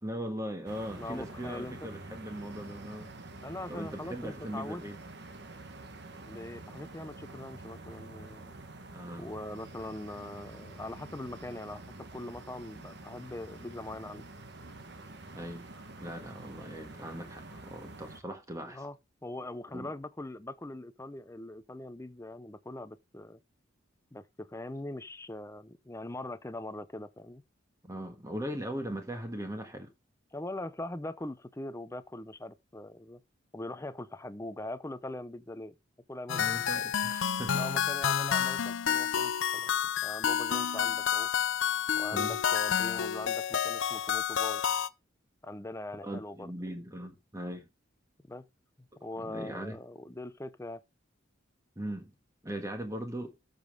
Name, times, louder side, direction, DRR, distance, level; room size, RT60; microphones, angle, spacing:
voice 1, 0.0-3.1 3.7-5.0 8.9-9.3 15.3-15.7 16.0-18.8 19.7-19.9 27.9-29.9 36.4-37.7 42.1-42.4 46.0-47.7 49.2-49.8 51.7-52.1 52.4-53.4, equal, 15° right, 1.5 m, -39 dB
sound 1, 0.6-18.2, right 2 dB, 55° right, 1.4 m, -47 dB
voice 2, 1.0-1.8 3.4-4.8 6.2-8.6 9.2-14.2 18.7-19.0 19.2-23.4 24.1-27.4 30.3-33.2 33.5-35.7 36.1-36.4 37.6-39.7 40.0-41.3 41.9-44.6 45.4-46.5 48.3-48.5 48.8-50.8, left 1 dB, 15° left, 0.6 m, -41 dB
sound 2, 36.3-44.9, left 8 dB, 70° left, 0.5 m, -29 dB
13.0 x 5.2 x 3.8 m
head